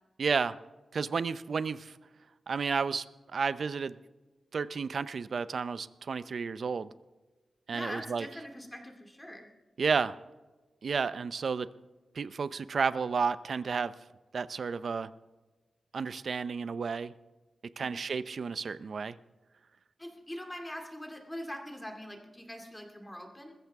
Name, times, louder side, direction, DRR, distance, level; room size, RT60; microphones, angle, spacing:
voice 1, 0.2-0.6 0.9-1.9 2.5-3.0 3.3-4.0 4.5-6.9 7.7-8.3 9.8-10.2 10.8-11.7 12.1-13.9 14.3-15.1 15.9-17.1 17.8-19.2, right 5 dB, 60° right, 15 dB, 0.5 m, -31 dB
voice 2, 7.7-9.5 17.8-17.9 20.0-23.5, equal, 10° left, 3 dB, 2.4 m, -42 dB
20.5 x 15.0 x 3.6 m, 1.2 s
wide cardioid pair, 120°, 0 cm